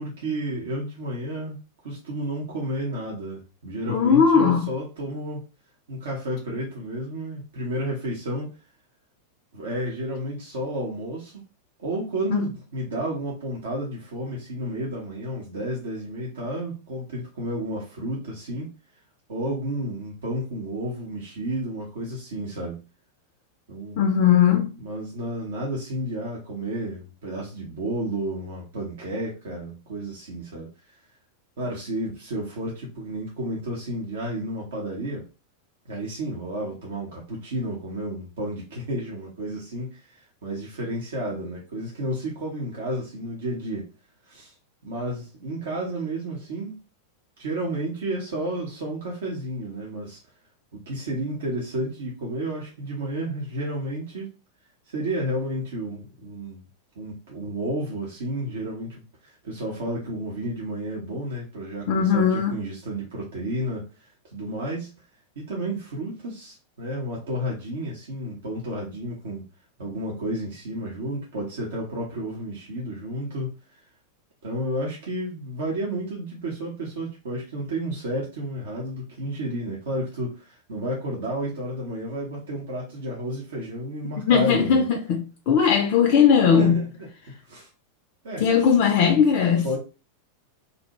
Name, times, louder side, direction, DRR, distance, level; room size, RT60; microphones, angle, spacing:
voice 1, 0.0-1.6 1.8-5.5 5.9-8.5 9.5-11.4 11.8-18.7 19.3-22.8 23.7-24.0 24.8-30.7 31.6-35.3 35.9-43.9 44.3-44.5 44.8-46.8 47.4-50.2 50.7-54.3 54.9-56.6 57.0-64.9 65.4-69.4 69.8-73.8 74.4-84.8 86.6-87.7 88.2-88.5 89.6-89.8, right 1 dB, 60° right, 0.7 m, -31 dB
voice 2, 3.9-4.7 12.3-12.4 24.0-24.8 61.9-62.5 84.3-86.8 88.4-89.7, left 7 dB, 45° left, 0.3 m, -19 dB
2.6 x 2.1 x 2.9 m
figure-of-eight pair, 90°, 0 cm